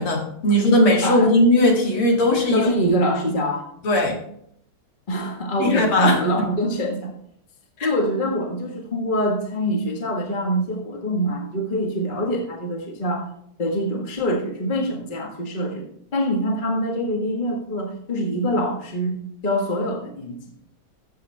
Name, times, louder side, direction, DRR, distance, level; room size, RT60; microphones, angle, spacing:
voice 1, 0.0-2.7 3.8-4.2 5.6-6.5 7.8-7.9, left 1 dB, 80° left, 0 dB, 2.9 m, -18 dB
voice 2, 2.5-3.6 5.1-7.1 7.8-13.3 13.6-15.8 16.1-19.2 19.4-20.4, equal, 25° left, 1 dB, 1.6 m, -24 dB
14.0 x 7.5 x 3.5 m, 0.69 s
omnidirectional pair, 2.3 m